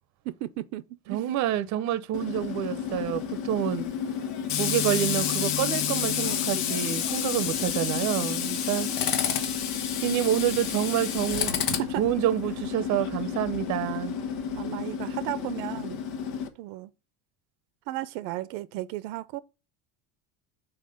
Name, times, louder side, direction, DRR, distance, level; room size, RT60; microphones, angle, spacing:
voice 1, 0.2-1.2 11.7-12.0 14.5-16.0 16.6-16.9 17.9-19.4, right 15 dB, 90° right, 0.7 m, -34 dB
voice 2, 1.1-3.8 4.6-9.3 10.0-11.7 12.0-14.2, right 12 dB, 40° right, 0.7 m, -28 dB
Tools, 2.1-16.5, left 8 dB, 85° left, 1.4 m, -30 dB
5.8 x 4.5 x 6.4 m
cardioid pair, 165°, 42 cm